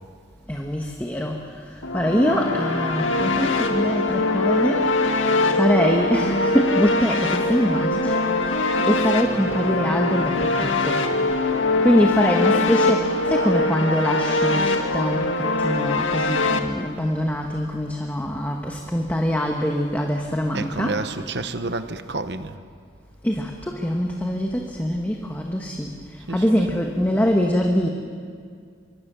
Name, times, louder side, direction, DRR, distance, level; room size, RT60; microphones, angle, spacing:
voice 1, 0.5-8.2 8.5-11.0 11.4-21.1 23.2-27.9, equal, 10° left, 1 dB, 1.4 m, -24 dB
sound 1, 1.8-16.6, left 2 dB, 90° left, 1.9 m, -22 dB
voice 2, 20.5-22.5 26.3-26.5, right 3 dB, 60° right, 10 dB, 1.1 m, -29 dB
25.5 x 24.0 x 6.9 m, 2.2 s
head